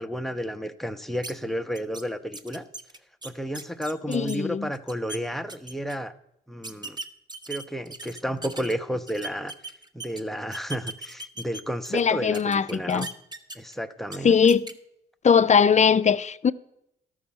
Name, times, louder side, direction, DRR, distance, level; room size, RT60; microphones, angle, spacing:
voice 1, 0.0-2.6 3.2-6.1 6.5-7.0 7.5-9.5 9.9-13.1 13.5-14.3, equal, ahead, 0.9 m, -32 dB
sound 1, 1.2-1.3 1.8-2.0 2.3-4.4 4.7-5.2 5.5-6.0 6.6-8.7 9.1-10.2 10.5-12.0 12.3-13.7 14.1-14.2 14.5-14.7, right 2 dB, 25° right, 1.1 m, -38 dB
voice 2, 4.1-4.7 11.9-13.1 14.2-14.7 15.2-16.5, left 6 dB, 40° left, 0.6 m, -20 dB
13.0 x 6.2 x 7.2 m
cardioid pair, 65°, 19 cm